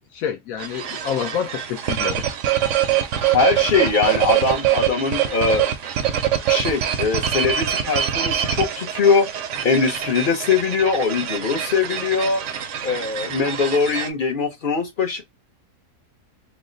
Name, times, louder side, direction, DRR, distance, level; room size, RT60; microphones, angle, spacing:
voice 1, 0.1-2.3, left 8 dB, 75° left, 1.0 m, -28 dB
sound 1, 0.6-14.1, right 10 dB, 70° right, 0.8 m, -24 dB
voice 2, 3.3-5.7 6.5-9.3 9.6-12.4 12.8-15.2, left 4 dB, 45° left, 0.7 m, -21 dB
3.1 x 2.1 x 3.7 m
omnidirectional pair, 1.5 m